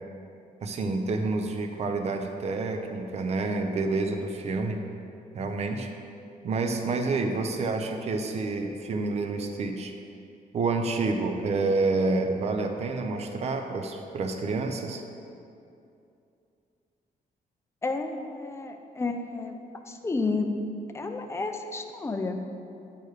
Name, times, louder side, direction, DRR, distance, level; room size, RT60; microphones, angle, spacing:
voice 1, 0.6-4.8 5.3-5.9 6.4-9.9 10.5-15.0, right 3 dB, 45° right, 5 dB, 0.6 m, -28 dB
voice 2, 17.8-19.6 19.9-20.5 20.9-22.4, left 3 dB, 15° left, 5 dB, 0.5 m, -31 dB
9.1 x 4.7 x 4.8 m, 2.6 s
wide cardioid pair, 150°, 16 cm